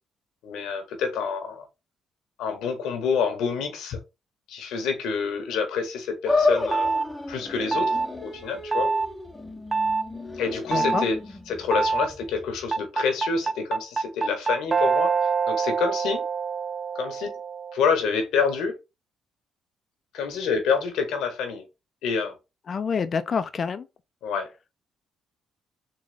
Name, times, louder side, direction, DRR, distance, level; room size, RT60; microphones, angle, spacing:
voice 1, 0.4-1.6 2.4-4.0 4.5-7.0 7.3-8.9 10.4-11.2 11.5-15.1 15.5-16.2 16.9-17.3 17.7-18.8 20.1-21.6 22.0-22.3 24.2-24.5, left 5 dB, 85° left, 1.3 m, -27 dB
sound 1, 6.3-12.7, left 3 dB, 15° left, 0.8 m, -30 dB
sound 2, 6.7-7.1 7.7-8.1 8.7-9.1 9.7-10.0 10.7-11.1 11.7-12.1 12.7-17.8, right 5 dB, 35° right, 0.3 m, -25 dB
voice 2, 10.7-11.0 22.7-23.9, left 6 dB, 50° left, 0.6 m, -27 dB
4.0 x 3.2 x 3.3 m
cardioid pair, 90°, 0 cm